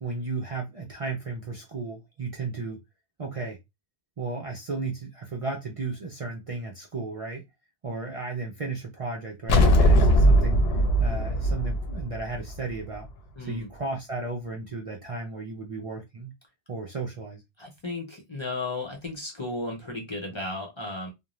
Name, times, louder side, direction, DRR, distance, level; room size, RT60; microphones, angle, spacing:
voice 1, 0.0-2.8 3.2-3.6 4.2-7.5 7.8-10.6 11.0-13.1 13.4-16.4 16.7-17.4, right 3 dB, 45° right, 0.5 m, -34 dB
sound 1, 9.5-12.9, equal, 75° left, 0.8 m, -20 dB
voice 2, 13.4-13.7 17.6-21.1, left 2 dB, 35° left, 0.6 m, -34 dB
2.5 x 2.1 x 3.0 m
omnidirectional pair, 1.0 m